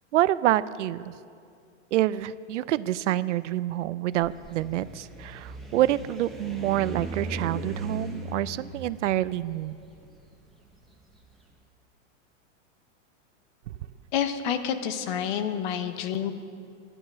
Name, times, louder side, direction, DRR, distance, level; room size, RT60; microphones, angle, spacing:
voice 1, 0.1-1.1 1.9-9.8 13.7-13.8, right 14 dB, 70° right, 17 dB, 0.5 m, -27 dB
sound 1, 4.1-11.3, right 1 dB, ahead, 1.0 m, -39 dB
voice 2, 14.1-16.3, left 8 dB, 40° left, 10 dB, 0.8 m, -28 dB
11.0 x 10.5 x 6.3 m, 2.4 s
supercardioid pair, 150°, 38 cm